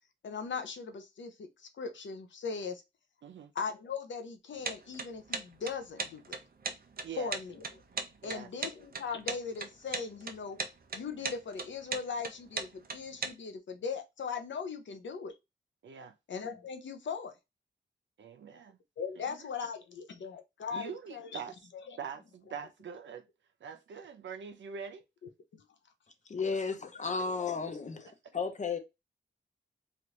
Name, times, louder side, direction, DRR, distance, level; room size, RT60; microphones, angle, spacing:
voice 1, 0.2-1.5 1.8-2.8 3.5-6.4 7.2-7.7 8.2-10.6 10.9-15.3 16.3-17.3 19.0-21.3 21.7-22.0 25.5-25.6 27.1-27.2, left 5 dB, 80° left, 0.7 m, -39 dB
sound 1, 4.6-13.3, right 4 dB, 55° right, 0.6 m, -37 dB
voice 2, 7.0-7.4 8.2-8.5 15.8-16.1 18.2-18.8 19.2-19.7 20.7-21.5 22.0-23.3 23.6-25.0, right 7 dB, 90° right, 0.6 m, -44 dB
voice 3, 26.3-28.1 28.3-28.8, left 5 dB, 40° left, 0.8 m, -33 dB
3.2 x 2.5 x 2.9 m
wide cardioid pair, 95°, 19 cm